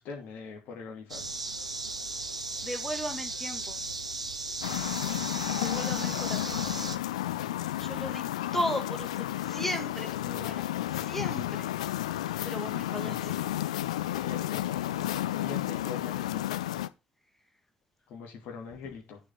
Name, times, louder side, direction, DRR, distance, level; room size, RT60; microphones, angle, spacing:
voice 1, 0.0-1.4 12.9-13.4 14.2-14.6 15.3-16.5 18.1-19.2, left 5 dB, 60° left, 2.9 m, -42 dB
sound 1, 1.1-7.0, right 3 dB, 90° right, 0.5 m, -36 dB
voice 2, 2.6-3.8 5.6-6.7 7.8-8.2 8.5-10.6 10.9-11.7 12.4-13.3, equal, 5° left, 2.5 m, -36 dB
sound 2, 4.6-16.9, left 13 dB, 75° left, 0.4 m, -32 dB
9.1 x 7.2 x 3.9 m
figure-of-eight pair, 45°, 3 cm